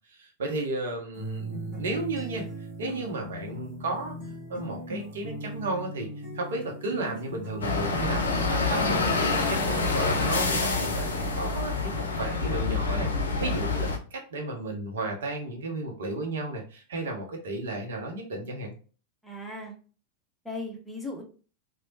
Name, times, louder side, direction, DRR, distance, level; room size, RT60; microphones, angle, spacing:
voice 1, 0.1-2.5 2.8-4.2 4.5-6.1 6.3-18.7, right 2 dB, 60° right, 1 dB, 0.7 m, -33 dB
sound 1, 1.2-9.2, equal, 35° right, 1.3 m, -38 dB
sound 2, 7.6-14.0, left 3 dB, 70° left, 0.4 m, -27 dB
voice 2, 19.2-19.7 20.4-21.2, left 2 dB, 5° left, 0 dB, 0.6 m, -37 dB
2.9 x 2.0 x 2.7 m, 0.38 s
figure-of-eight pair, 90°, 0 cm